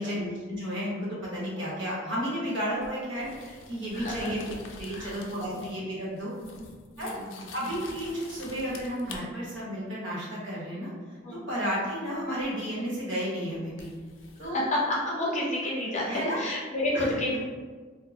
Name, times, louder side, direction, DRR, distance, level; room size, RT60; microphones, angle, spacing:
voice 1, 0.0-4.5 4.8-6.3 7.0-7.1 7.5-10.9 11.5-13.9 14.4-14.6 16.0-16.4 16.9-17.1, equal, 75° right, -6 dB, 1.0 m, -32 dB
sound 1, 2.8-5.9 6.1-9.2 12.4-12.5 13.8-14.5, left 3 dB, 75° left, 0.4 m, -46 dB
voice 2, 3.9-4.3 4.9-5.2 5.4-5.6 6.4-6.7 7.0-7.4 11.2-11.5 14.4-16.1 16.4-17.4, left 1 dB, 40° left, -5 dB, 0.7 m, -30 dB
2.4 x 2.1 x 3.1 m, 1.5 s
head